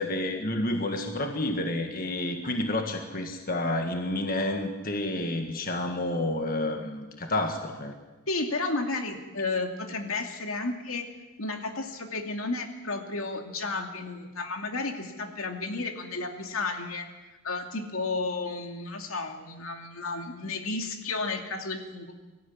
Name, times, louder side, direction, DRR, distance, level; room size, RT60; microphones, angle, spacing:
voice 1, 0.0-7.9, left 1 dB, 40° left, 5 dB, 1.7 m, -30 dB
voice 2, 8.3-11.0 11.4-17.1 17.4-22.1, left 3 dB, 75° left, 4 dB, 2.5 m, -32 dB
23.5 x 14.0 x 9.7 m, 1.2 s
head